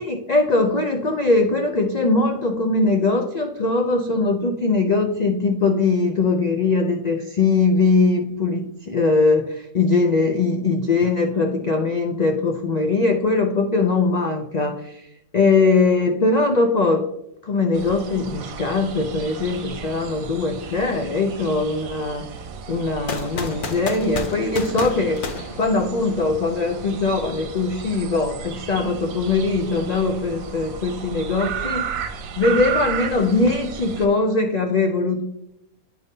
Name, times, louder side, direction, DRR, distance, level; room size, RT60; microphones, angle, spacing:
voice 1, 0.1-15.0 15.3-17.1 17.4-22.3 22.7-25.2 25.6-31.9 32.4-35.2, left 3 dB, 85° left, 4 dB, 0.3 m, -21 dB
sound 1, 17.7-34.1, right 7 dB, 75° right, 1.1 m, -34 dB
sound 2, 23.1-26.3, left 4 dB, 50° left, 0.7 m, -31 dB
9.3 x 5.3 x 2.7 m, 0.84 s
omnidirectional pair, 1.5 m